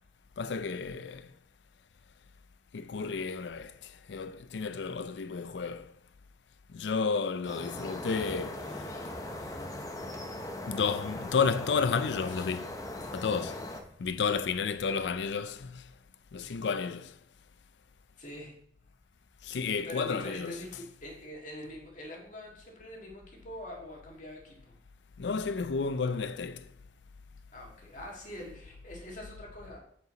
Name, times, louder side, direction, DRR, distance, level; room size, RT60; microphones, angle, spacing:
voice 1, 0.4-1.3 2.7-5.9 6.7-9.2 10.7-12.7 13.1-13.7 14.0-15.9 16.3-17.1 19.4-20.8 25.2-26.7, left 5 dB, 90° left, 0.5 m, -32 dB
sound 1, 7.4-13.8, left 1 dB, 20° left, 0.7 m, -39 dB
voice 2, 18.2-18.5 19.8-24.8 27.5-29.8, left 1 dB, 45° left, 1.8 m, -44 dB
8.2 x 4.6 x 3.9 m
head